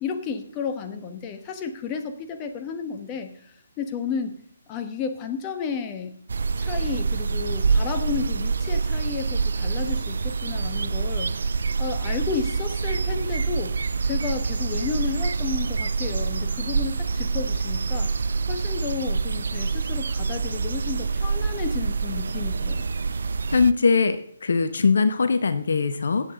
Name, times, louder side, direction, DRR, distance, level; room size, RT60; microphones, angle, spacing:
voice 1, 0.0-3.3 3.8-4.3 4.7-6.1 6.6-11.3 11.8-13.7 14.0-18.1 18.5-22.8, left 6 dB, 20° left, 7 dB, 1.2 m, -32 dB
sound 1, 6.3-23.7, right 4 dB, 60° right, 0.5 m, -26 dB
voice 2, 23.5-26.3, left 4 dB, 60° left, 10 dB, 0.8 m, -21 dB
15.5 x 8.0 x 3.9 m, 0.66 s
figure-of-eight pair, 140°, 0 cm